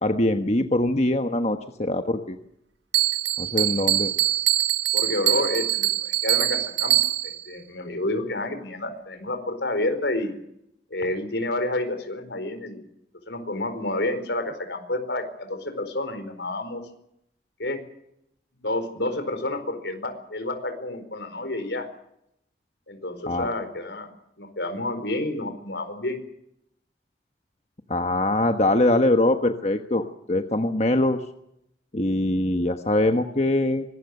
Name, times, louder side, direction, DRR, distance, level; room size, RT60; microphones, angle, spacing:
voice 1, 0.0-2.4 3.4-4.1 23.3-23.5 27.9-31.2 31.9-33.8, left 1 dB, 35° left, 6 dB, 1.3 m, -23 dB
Bell, 2.9-7.5, right 15 dB, 85° right, 1.4 m, -23 dB
voice 2, 4.9-7.0 7.5-10.3 10.9-12.8 13.3-16.8 17.6-17.8 18.6-21.9 22.9-24.1 24.4-26.2, left 2 dB, 75° left, 9 dB, 4.7 m, -29 dB
24.5 x 19.5 x 6.7 m, 0.77 s
head